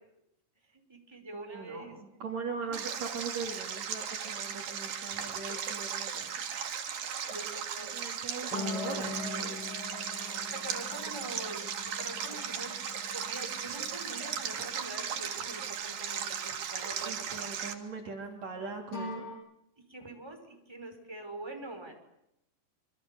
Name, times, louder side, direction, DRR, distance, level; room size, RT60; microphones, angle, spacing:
voice 1, 0.7-2.0 2.6-2.8 5.1-5.4 7.2-8.0 9.0-9.2 10.2-12.8 13.1-17.4 19.9-21.9, right 2 dB, 5° right, 4 dB, 5.3 m, -45 dB
voice 2, 1.3-6.4 7.8-9.7 17.0-19.3, right 4 dB, 55° right, 3 dB, 3.9 m, -41 dB
Stream, 2.7-17.7, right 7 dB, 85° right, 3.9 m, -37 dB
sound 1, 8.5-15.4 18.9-19.4, left 3 dB, 80° left, 8.9 m, -42 dB
27.0 x 25.5 x 7.0 m, 0.82 s
omnidirectional pair, 3.8 m